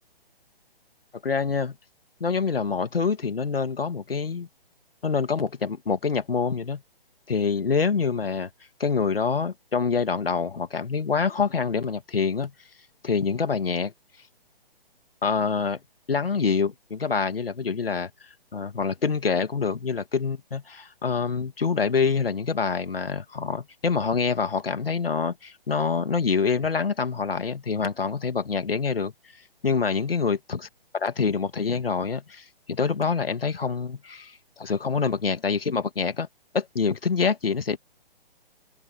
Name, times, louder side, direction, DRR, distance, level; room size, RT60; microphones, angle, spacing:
voice 1, 1.2-1.7 2.2-4.5 5.0-6.8 7.3-8.5 8.8-12.5 13.0-13.9 15.2-15.8 16.1-18.1 18.5-29.1 29.6-30.7 30.9-36.3 36.5-37.8, left 5 dB, 75° left, 2.7 m, -26 dB
open air
figure-of-eight pair, 135°, 29 cm